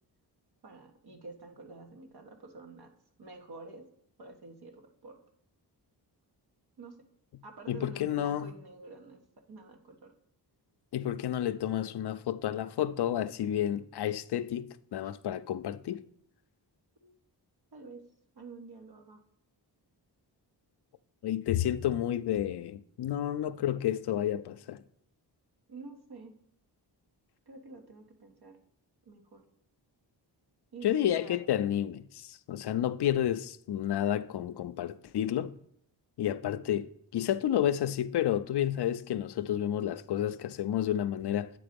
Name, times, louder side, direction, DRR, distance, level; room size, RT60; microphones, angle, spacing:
voice 1, 0.6-2.9 3.2-3.9 4.2-5.2 6.8-7.0 7.4-9.2 9.5-10.1 15.0-15.1 17.0-17.1 17.7-18.0 18.3-19.2 25.7-26.4 27.5-28.6 29.0-29.4 30.7-31.4, right 3 dB, 65° right, 1.3 m, -48 dB
voice 2, 7.7-8.5 10.9-16.0 21.2-24.8 30.8-35.5 36.2-41.5, left 11 dB, 70° left, 0.5 m, -30 dB
9.0 x 3.9 x 5.1 m
wide cardioid pair, 105°, 42 cm